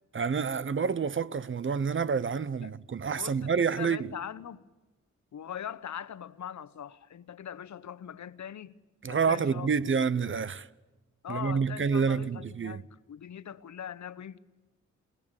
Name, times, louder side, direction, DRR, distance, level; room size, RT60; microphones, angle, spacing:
voice 1, 0.1-4.1 9.0-10.7 11.3-12.8, right 6 dB, 40° right, 0.8 m, -28 dB
voice 2, 3.2-4.6 5.3-8.7 9.1-9.7 11.2-14.4, left 9 dB, 70° left, 1.0 m, -41 dB
28.0 x 19.0 x 9.0 m
cardioid pair, 75°, 29 cm